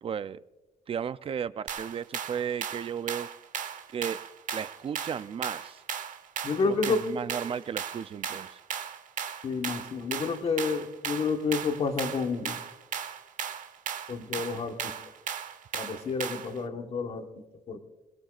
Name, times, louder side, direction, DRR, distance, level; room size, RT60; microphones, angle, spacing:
voice 1, 0.0-0.4 0.9-3.3 3.9-4.2 4.5-5.8 6.7-8.6, right 8 dB, 40° right, 14 dB, 0.5 m, -34 dB
sound 1, 1.7-16.6, right 8 dB, 65° right, 1.0 m, -36 dB
voice 2, 6.4-7.0 9.4-12.6 14.1-14.9 15.7-17.8, left 4 dB, 45° left, 5 dB, 1.4 m, -30 dB
27.5 x 17.5 x 2.5 m, 1.1 s
cardioid pair, 145°, 14 cm